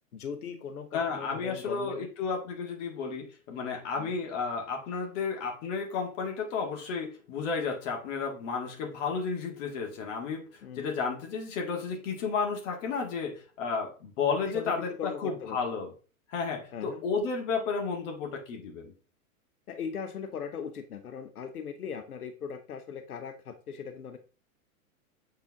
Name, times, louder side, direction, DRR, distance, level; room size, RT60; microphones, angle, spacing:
voice 1, 0.1-2.1 4.0-4.1 10.6-10.9 14.4-15.6 16.7-17.0 19.7-24.2, left 7 dB, 90° left, 8 dB, 0.9 m, -39 dB
voice 2, 0.9-15.9 16.3-18.9, left 5 dB, 55° left, 1 dB, 2.3 m, -32 dB
7.5 x 4.4 x 3.6 m, 0.36 s
hypercardioid pair, 105°, 43 cm